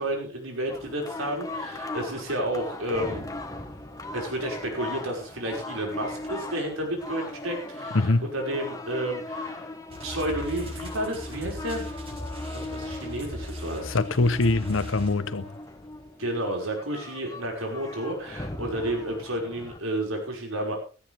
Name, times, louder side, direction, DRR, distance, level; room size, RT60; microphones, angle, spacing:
voice 1, 0.0-3.3 4.1-9.7 10.0-11.9 12.5-14.0 16.2-20.8, right 1 dB, 90° right, 5.7 m, -31 dB
sound 1, 0.7-19.8, left 2 dB, 15° left, 1.5 m, -39 dB
voice 2, 7.9-8.3 13.8-15.5, left 2 dB, 70° left, 0.9 m, -23 dB
sound 2, 9.9-15.5, equal, 30° right, 5.7 m, -38 dB
17.0 x 14.0 x 3.5 m
head